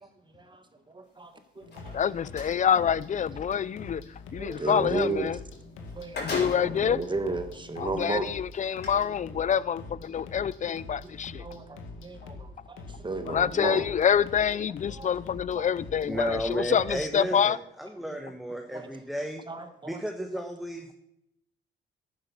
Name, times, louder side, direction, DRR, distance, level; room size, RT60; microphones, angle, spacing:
voice 1, 0.3-1.9 4.4-5.3 5.9-8.3 10.7-11.0 11.3-13.8 15.0-15.1 15.5-15.6 18.1-18.2 18.7-18.9 19.5-20.4, right 3 dB, 25° right, 1.5 m, -34 dB
sound 1, 1.6-17.1, left 3 dB, 85° left, 1.9 m, -44 dB
sound 2, 1.6-2.6 5.4-5.5 5.8-6.9 7.6-7.7 8.6-8.9, left 2 dB, 55° left, 5.7 m, -36 dB
voice 2, 1.9-5.4 6.1-7.0 7.8-11.5 13.3-17.6, left 8 dB, 40° left, 0.5 m, -27 dB
voice 3, 16.1-19.4 19.8-20.9, equal, ahead, 1.5 m, -33 dB
11.5 x 9.5 x 6.0 m
cardioid pair, 90°, 20 cm